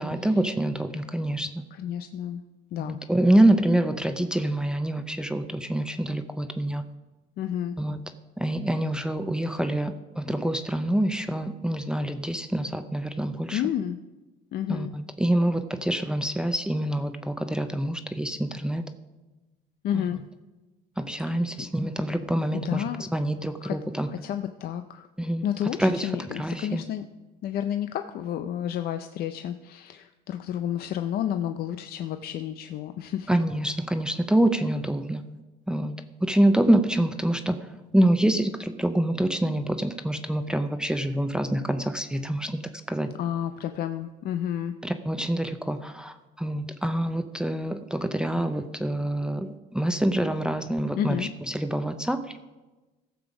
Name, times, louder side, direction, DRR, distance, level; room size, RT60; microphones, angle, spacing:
voice 1, 0.0-1.6 2.8-6.8 7.8-8.0 8.4-13.6 14.7-18.8 19.9-20.1 21.0-24.1 25.2-25.5 25.8-26.1 26.4-26.8 33.3-35.2 35.7-35.9 36.2-37.5 37.9-42.6 42.9-43.1 44.8-52.4, right 1 dB, 5° right, 8 dB, 0.6 m, -26 dB
voice 2, 1.7-2.4 2.7-3.0 7.4-7.8 13.5-14.0 14.5-14.9 19.8-20.2 21.3-21.7 22.5-23.0 23.6-23.8 24.1-25.1 25.4-27.0 27.4-33.3 43.2-44.7 51.0-51.3, left 10 dB, 65° left, 8 dB, 0.6 m, -31 dB
16.0 x 7.1 x 5.0 m, 1.2 s
cardioid pair, 110°, 17 cm